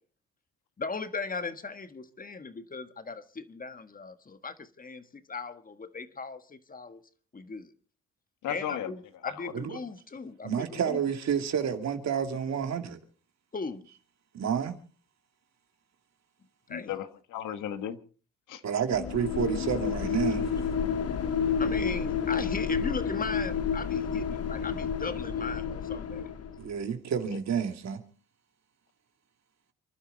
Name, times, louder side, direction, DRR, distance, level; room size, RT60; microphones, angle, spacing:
voice 1, 0.8-7.0 7.3-7.7 8.5-11.0 13.5-13.9 16.7-16.9 21.6-26.3, left 4 dB, 30° left, 1.5 m, -38 dB
voice 2, 8.4-8.9 9.2-9.5 16.7-18.0 18.5-18.6 27.3-27.4, left 10 dB, 85° left, 1.5 m, -35 dB
voice 3, 10.4-13.0 14.3-14.8 18.6-20.5 26.6-28.0, right 7 dB, 60° right, 2.4 m, -30 dB
sound 1, 18.9-26.7, left 7 dB, 55° left, 1.4 m, -30 dB
29.0 x 11.5 x 4.0 m
cardioid pair, 90°, 30 cm